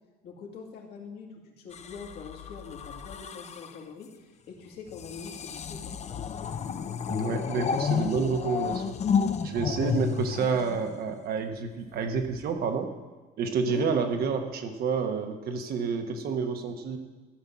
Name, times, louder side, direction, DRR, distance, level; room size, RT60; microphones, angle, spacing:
voice 1, 0.2-6.0 9.7-10.0 13.6-13.9, left 6 dB, 70° left, -1 dB, 2.3 m, -43 dB
sound 1, 1.7-3.8 4.9-11.3 12.2-12.5, left 7 dB, 40° left, 0.7 m, -31 dB
voice 2, 7.1-9.0 9.4-12.9 13.4-17.0, right 5 dB, 65° right, 6 dB, 1.4 m, -29 dB
13.5 x 5.5 x 7.4 m, 1.3 s
cardioid pair, 110°, 17 cm